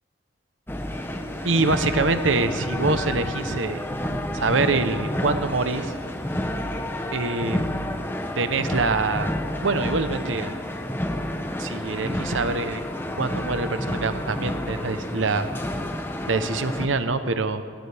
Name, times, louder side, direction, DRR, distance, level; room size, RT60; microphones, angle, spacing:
sound 1, 0.7-16.9, left 1 dB, 10° left, 0.7 m, -30 dB
voice 1, 1.4-3.8 4.3-5.9 7.1-7.9 8.4-9.3 9.6-10.5 11.6-12.8 13.2-15.5 16.3-17.6, right 3 dB, 85° right, 10 dB, 0.9 m, -25 dB
18.5 x 17.5 x 3.5 m, 2.3 s
head